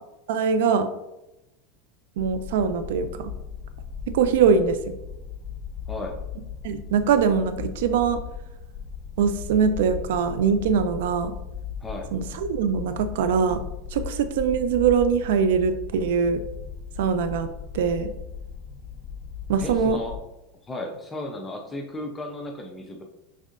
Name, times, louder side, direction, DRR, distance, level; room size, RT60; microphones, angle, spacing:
voice 1, 0.3-0.9 2.2-3.3 4.1-4.8 6.6-8.2 9.2-11.3 12.1-13.6 13.9-16.4 17.0-17.5 17.7-18.1 19.5-20.0, right 6 dB, 75° right, 10 dB, 0.4 m, -22 dB
sound 1, 2.2-20.2, left 6 dB, 40° left, 1.0 m, -37 dB
voice 2, 5.9-6.2 11.8-12.1 19.6-20.2 20.7-23.0, left 1 dB, 15° left, 2 dB, 0.6 m, -35 dB
5.4 x 3.6 x 2.5 m, 0.93 s
supercardioid pair, 125°, 0 cm